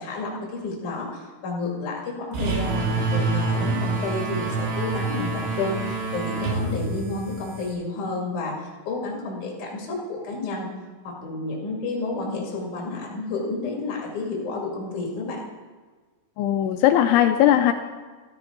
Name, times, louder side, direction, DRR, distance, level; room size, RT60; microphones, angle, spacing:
voice 1, 0.0-8.5 8.8-10.7 11.0-15.4, left 3 dB, 45° left, -2 dB, 3.1 m, -30 dB
sound 1, 2.3-7.7, right 3 dB, 65° right, 3.7 m, -27 dB
voice 2, 16.4-17.7, left 11 dB, 85° left, 8 dB, 2.7 m, -18 dB
13.5 x 13.0 x 3.8 m, 1.4 s
omnidirectional pair, 5.8 m